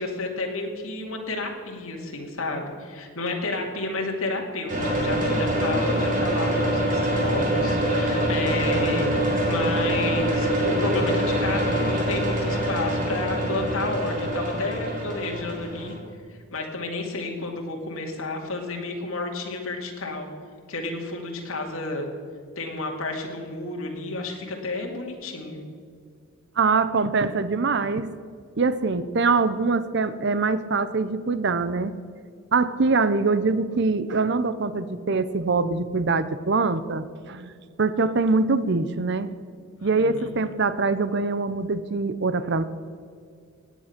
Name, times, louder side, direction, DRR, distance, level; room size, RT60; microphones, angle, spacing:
voice 1, 0.0-16.0 16.3-20.3 20.7-22.1 22.6-25.6 39.8-40.3, left 2 dB, 70° left, 0 dB, 2.4 m, -31 dB
sound 1, 4.7-16.0, right 1 dB, 35° right, 3.2 m, -24 dB
voice 2, 26.6-28.1 28.6-31.9 32.5-37.5 37.8-39.3 39.8-42.6, right 4 dB, 50° right, 13 dB, 0.6 m, -23 dB
17.0 x 9.3 x 5.9 m, 2.2 s
head